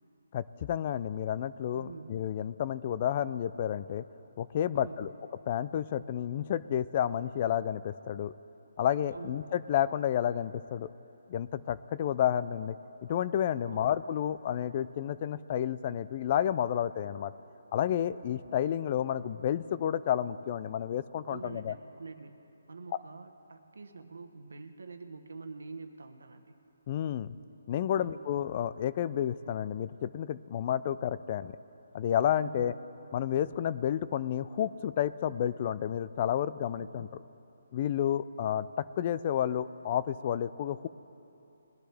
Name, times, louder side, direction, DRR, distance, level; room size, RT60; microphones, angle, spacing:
voice 1, 0.3-4.0 4.4-5.1 5.5-8.3 8.8-10.9 11.3-12.7 13.1-17.3 17.7-21.7 26.9-27.3 27.7-31.5 31.9-32.7 33.1-37.1 37.7-40.9, left 10 dB, 35° left, 16 dB, 0.3 m, -31 dB
voice 2, 1.7-2.2 4.7-5.1 9.1-9.3 13.6-13.9 21.2-26.6 27.9-28.2 32.4-32.8 36.8-37.1, right 4 dB, 85° right, 7 dB, 1.1 m, -46 dB
21.0 x 10.5 x 3.4 m, 2.9 s
hypercardioid pair, 160°, 0 cm